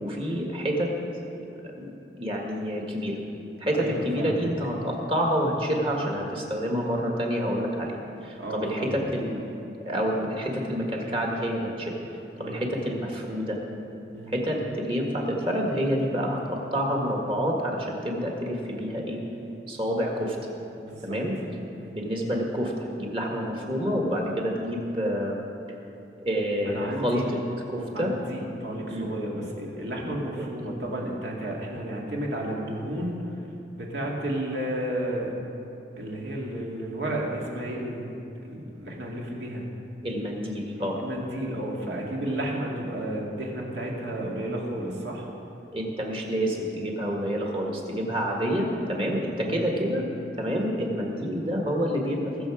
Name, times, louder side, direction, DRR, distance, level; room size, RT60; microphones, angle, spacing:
voice 1, 0.0-0.9 1.4-1.9 2.2-3.2 3.6-9.4 9.9-12.0 12.4-13.6 14.3-19.2 19.7-20.4 21.0-21.4 21.9-25.5 26.2-27.4 27.7-28.1 28.9-29.1 30.4-30.5 40.0-41.0 45.7-50.0 50.4-52.5, equal, 30° right, 0 dB, 1.7 m, -28 dB
voice 2, 3.7-4.5 8.4-9.0 12.4-12.6 14.1-14.3 20.8-21.2 21.7-21.9 26.7-27.3 27.9-33.2 33.7-35.3 36.0-38.2 38.4-39.7 41.0-45.3 49.4-49.6, right 1 dB, 70° right, -2 dB, 2.2 m, -32 dB
21.0 x 7.1 x 5.0 m, 2.9 s
head